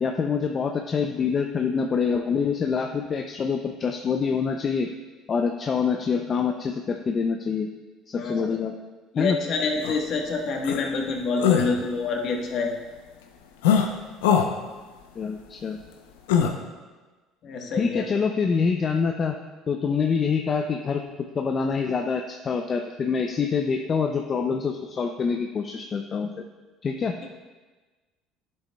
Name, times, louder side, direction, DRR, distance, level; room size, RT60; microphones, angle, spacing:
voice 1, 0.0-4.9 5.3-7.7 8.1-8.7 9.2-9.4 15.2-15.8 17.8-19.3 19.7-21.0 21.3-26.4 26.8-27.2, left 5 dB, 40° left, 4 dB, 0.5 m, -25 dB
voice 2, 8.2-8.6 9.1-12.7 17.4-18.0, left 4 dB, 55° left, 1 dB, 1.3 m, -27 dB
sound 1, 9.8-10.0 10.6-10.8 11.4-11.7 13.6-13.9 14.2-14.5 16.3-16.5, left 8 dB, 90° left, 0.6 m, -20 dB
10.5 x 7.6 x 2.3 m, 1.3 s
supercardioid pair, 80°, 0 cm